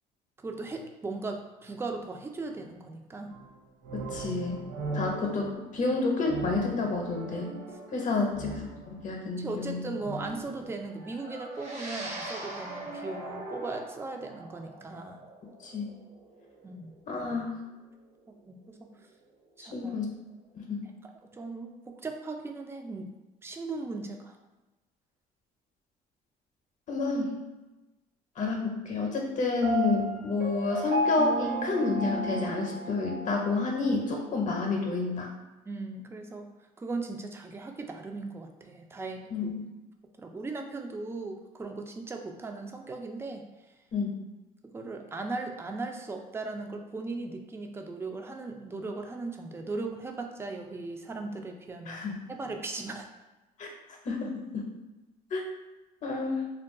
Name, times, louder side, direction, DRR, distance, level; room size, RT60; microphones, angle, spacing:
voice 1, 0.4-3.3 4.9-5.0 8.2-8.3 9.4-15.2 16.6-17.0 18.5-18.9 19.6-20.0 21.3-23.1 23.4-24.4 35.6-36.4 36.8-39.5 40.2-43.4 44.7-53.1, right 3 dB, 15° right, 3 dB, 0.3 m, -38 dB
sound 1, 3.3-9.2 10.0-13.7, right 3 dB, 90° right, 0.6 m, -40 dB
voice 2, 3.9-4.6 4.9-7.5 7.9-9.8 15.6-15.9 17.1-17.5 19.7-20.2 20.5-20.8 26.9-27.4 28.4-35.3 39.3-39.6 43.9-44.1 51.9-52.1 53.6-53.7 54.0-54.3 54.5-54.6 55.3-55.4 56.0-56.5, left 3 dB, 50° left, 1 dB, 0.6 m, -29 dB
sound 2, 11.6-20.1, right 2 dB, 40° right, 0.7 m, -45 dB
Piano, 29.6-33.5, right 1 dB, 60° right, 1.0 m, -31 dB
2.3 x 2.2 x 3.6 m, 1.1 s
cardioid pair, 110°, 17 cm